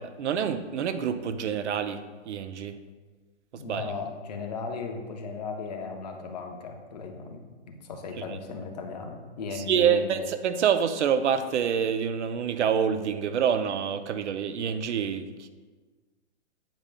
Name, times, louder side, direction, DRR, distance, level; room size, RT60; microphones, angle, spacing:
voice 1, 0.0-2.8 3.5-3.9 8.2-8.4 9.5-15.5, right 7 dB, 75° right, 10 dB, 0.6 m, -27 dB
voice 2, 3.6-10.3, left 4 dB, 35° left, 3 dB, 0.6 m, -36 dB
8.8 x 5.0 x 2.2 m, 1.4 s
hypercardioid pair, 160°, 35 cm